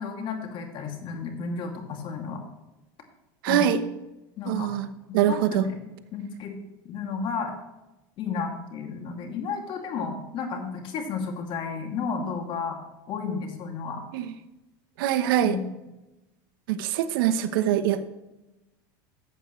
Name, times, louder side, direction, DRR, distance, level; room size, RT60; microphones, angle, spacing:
voice 1, 0.0-2.4 3.5-3.7 4.4-4.7 5.3-5.8 6.1-6.5 6.8-7.5 8.2-12.8 13.1-14.0 15.4-15.6, left 5 dB, 45° left, 3 dB, 2.5 m, -32 dB
voice 2, 3.4-3.8 4.5-4.9 5.1-5.7 14.1-14.3 15.0-15.6 16.7-18.1, right 10 dB, 75° right, 11 dB, 0.9 m, -23 dB
14.5 x 8.1 x 3.2 m, 1.0 s
supercardioid pair, 125°, 12 cm